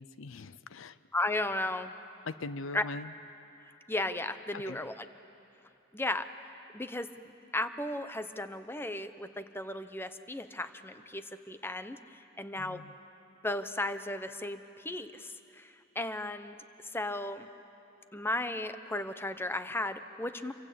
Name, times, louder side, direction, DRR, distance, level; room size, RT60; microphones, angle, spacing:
voice 1, 0.0-1.0 2.2-3.1 4.5-4.8 12.6-12.9, left 3 dB, 80° left, 15 dB, 0.6 m, -41 dB
voice 2, 1.1-1.9 2.7-2.8 3.9-4.9 5.9-6.3 6.7-7.1 7.5-12.8 13.4-16.6 16.9-17.5 18.1-20.5, left 1 dB, 10° left, 10 dB, 0.9 m, -35 dB
28.0 x 24.5 x 8.6 m, 2.9 s
head